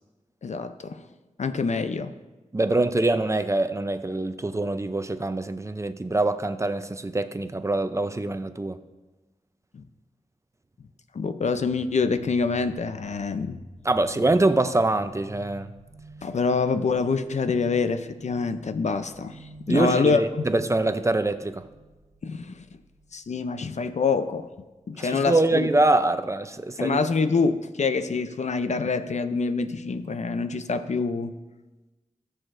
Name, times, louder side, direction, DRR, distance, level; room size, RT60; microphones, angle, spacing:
voice 1, 0.4-1.0 1.4-2.1 9.7-9.8 11.1-13.6 16.2-20.2 22.2-22.6 23.1-24.5 24.9-25.7 26.8-31.3, left 4 dB, 65° left, 10 dB, 0.6 m, -26 dB
voice 2, 2.5-8.8 13.8-15.7 19.7-21.6 25.0-27.0, right 2 dB, 25° right, 10 dB, 0.6 m, -24 dB
sound 1, 11.5-23.0, equal, 90° right, 1.4 m, -48 dB
18.0 x 6.5 x 2.6 m, 1.2 s
cardioid pair, 55°, 13 cm